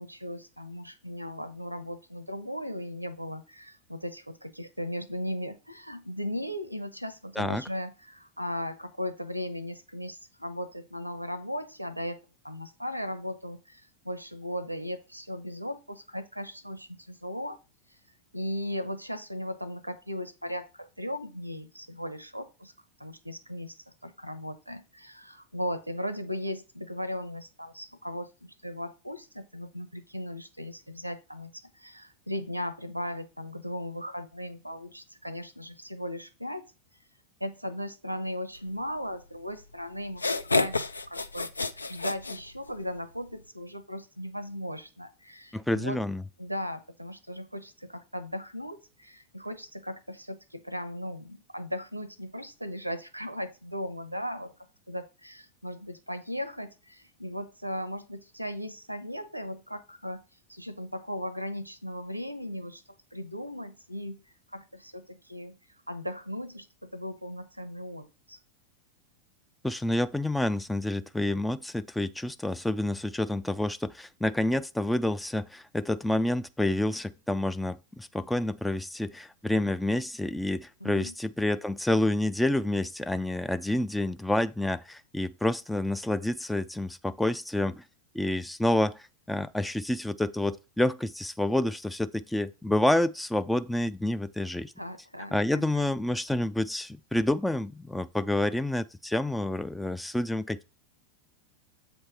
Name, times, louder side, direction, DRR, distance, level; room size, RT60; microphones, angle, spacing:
voice 1, 0.0-12.2 12.4-17.6 18.3-22.7 23.0-23.8 24.0-36.6 37.4-46.0 46.4-60.2 60.5-62.8 63.1-64.2 64.5-65.6 65.9-68.4 80.8-81.1 94.8-95.9, equal, 90° right, 0.7 m, -37 dB
sound 1, 39.6-39.7 40.1-43.0, left 3 dB, 80° left, 0.4 m, -29 dB
voice 2, 45.5-46.2 69.6-87.8 88.1-94.7 95.3-100.6, left 1 dB, 5° left, 0.3 m, -28 dB
7.8 x 3.1 x 6.1 m
figure-of-eight pair, 90°, 0 cm